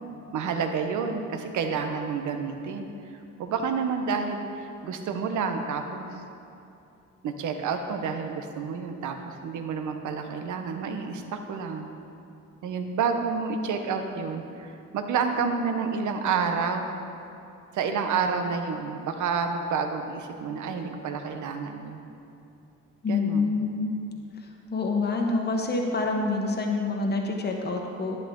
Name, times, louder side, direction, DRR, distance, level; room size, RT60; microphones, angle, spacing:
voice 1, 0.3-2.9 3.4-6.2 7.2-11.9 12.6-16.9 17.7-22.0 23.1-23.6, right 5 dB, 75° right, 5 dB, 0.9 m, -29 dB
voice 2, 23.0-23.9 24.7-28.2, left 3 dB, 35° left, 1 dB, 1.1 m, -27 dB
11.5 x 8.5 x 3.8 m, 2.7 s
cardioid pair, 90°, 30 cm